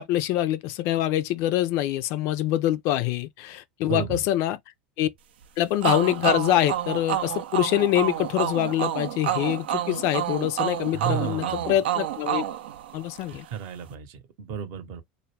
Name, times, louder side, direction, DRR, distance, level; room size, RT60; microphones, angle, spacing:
voice 1, 0.0-4.6 5.0-5.1 5.6-12.4 12.9-13.5, left 13 dB, 55° left, 0.4 m, -25 dB
voice 2, 3.8-4.2 10.9-11.8 13.5-15.0, right 9 dB, 55° right, 0.8 m, -33 dB
sound 1, 5.8-13.4, right 11 dB, 85° right, 0.4 m, -29 dB
2.3 x 2.0 x 3.2 m
hypercardioid pair, 100°, 5 cm